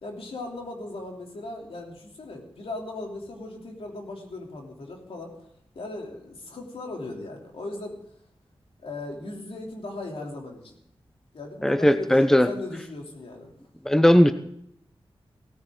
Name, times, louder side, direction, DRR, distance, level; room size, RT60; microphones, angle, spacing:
voice 1, 0.0-5.4 5.7-8.0 8.8-10.8 11.3-13.6, left 2 dB, 90° left, 0 dB, 3.1 m, -37 dB
voice 2, 11.6-12.5 13.9-14.3, equal, 5° left, 10 dB, 0.8 m, -18 dB
16.5 x 14.0 x 3.9 m, 0.73 s
wide cardioid pair, 100°, 10 cm